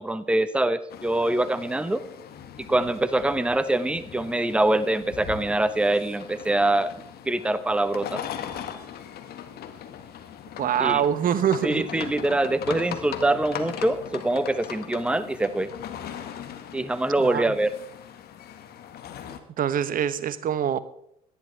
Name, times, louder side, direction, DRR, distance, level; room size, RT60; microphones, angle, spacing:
voice 1, 0.0-2.0 2.7-6.9 7.2-8.2 10.8-11.0 11.6-15.7 16.7-17.7, right 2 dB, 5° right, 13 dB, 0.9 m, -24 dB
sound 1, 0.9-19.4, left 9 dB, 55° left, 1.7 m, -39 dB
voice 2, 10.6-12.1 17.2-17.4 19.6-20.8, right 9 dB, 45° right, 15 dB, 0.9 m, -25 dB
18.5 x 12.0 x 3.4 m, 0.73 s
hypercardioid pair, 60°, 20 cm